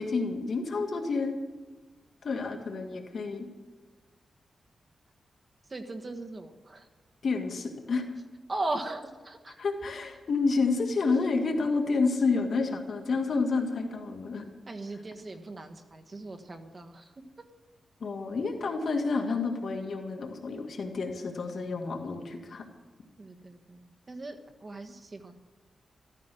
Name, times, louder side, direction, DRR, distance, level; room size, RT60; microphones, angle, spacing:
voice 1, 0.0-1.4 2.2-3.5 7.2-8.0 9.6-14.5 18.0-22.7, left 4 dB, 60° left, 4 dB, 2.1 m, -29 dB
voice 2, 5.7-6.9 8.5-9.5 14.7-17.5 23.2-25.3, right 2 dB, 35° right, 5 dB, 1.4 m, -38 dB
14.0 x 13.5 x 6.3 m, 1.3 s
wide cardioid pair, 110°, 0 cm